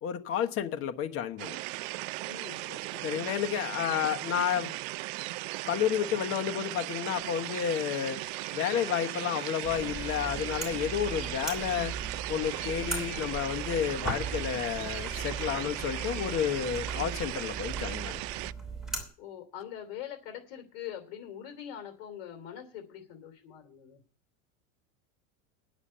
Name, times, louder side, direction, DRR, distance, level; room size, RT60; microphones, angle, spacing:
voice 1, 0.0-1.6 3.0-4.7 5.7-8.2 8.5-11.9 12.3-18.2, left 9 dB, 35° left, 1.2 m, -31 dB
sound 1, 1.4-18.5, right 22 dB, 60° right, 0.5 m, -37 dB
voice 2, 2.3-3.0 15.5-15.7 19.2-24.0, left 10 dB, 70° left, 2.9 m, -43 dB
Engine, 7.2-18.0, left 5 dB, 85° left, 4.2 m, -51 dB
sound 2, 9.6-19.0, right 4 dB, ahead, 3.0 m, -39 dB
9.9 x 7.4 x 8.6 m
supercardioid pair, 145°, 37 cm